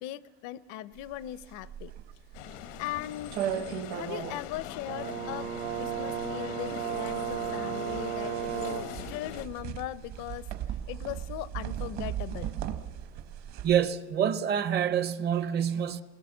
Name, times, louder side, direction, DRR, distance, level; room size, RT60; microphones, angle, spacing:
voice 1, 0.0-1.9 2.8-3.4 3.9-5.5 5.8-10.5 10.9-12.5, left 14 dB, 65° left, 0.6 m, -39 dB
sound 1, 1.0-13.7, right 10 dB, 55° right, 1.1 m, -38 dB
sound 2, 2.3-9.5, left 11 dB, 85° left, 1.0 m, -42 dB
Brass instrument, 4.9-9.0, right 10 dB, 75° right, 1.6 m, -34 dB
voice 2, 13.6-16.0, right 9 dB, 30° right, 0.6 m, -27 dB
27.5 x 20.0 x 7.2 m
cardioid pair, 160°, 32 cm